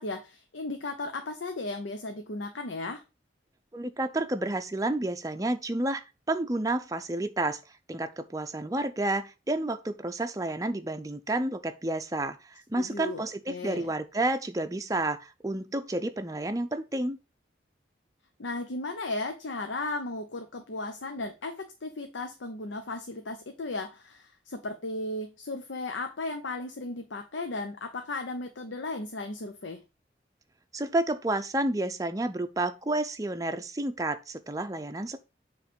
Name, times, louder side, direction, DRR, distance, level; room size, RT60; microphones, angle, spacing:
voice 1, 0.0-3.0 12.8-13.9 18.4-29.8, left 2 dB, 90° left, 0.7 m, -35 dB
voice 2, 3.7-7.6 7.9-17.2 30.7-35.2, right 2 dB, 20° right, 0.5 m, -30 dB
7.7 x 3.2 x 5.2 m
head